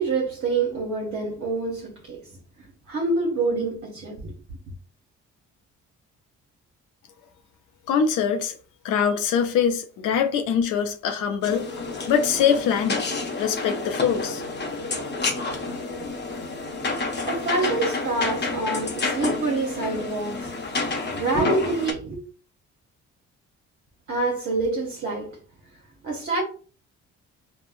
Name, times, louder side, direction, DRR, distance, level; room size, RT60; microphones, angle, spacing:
voice 1, 0.0-2.2 2.9-4.3 17.3-22.2 24.1-25.4 26.0-26.4, right 3 dB, 50° right, 0.8 m, -26 dB
voice 2, 7.9-8.6 8.8-11.7 12.1-13.1 13.4-14.4, left 7 dB, 85° left, 0.4 m, -23 dB
sound 1, 11.4-21.9, left 3 dB, 35° left, 0.7 m, -29 dB
3.5 x 2.0 x 2.4 m
cardioid pair, 90°, 30 cm